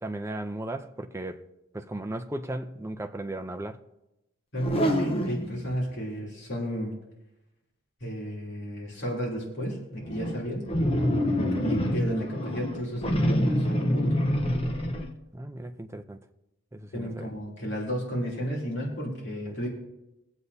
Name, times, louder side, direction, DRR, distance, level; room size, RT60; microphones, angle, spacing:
voice 1, 0.0-1.5 1.7-3.8 11.4-11.7 15.3-16.2 16.7-17.3 19.5-19.6, right 1 dB, 15° right, 0.5 m, -36 dB
voice 2, 4.5-7.0 8.0-10.7 11.6-14.2 16.9-19.7, equal, 55° left, 3.1 m, -32 dB
sound 1, 4.6-5.8 10.0-15.1, equal, 25° left, 0.9 m, -26 dB
22.5 x 8.0 x 2.8 m
head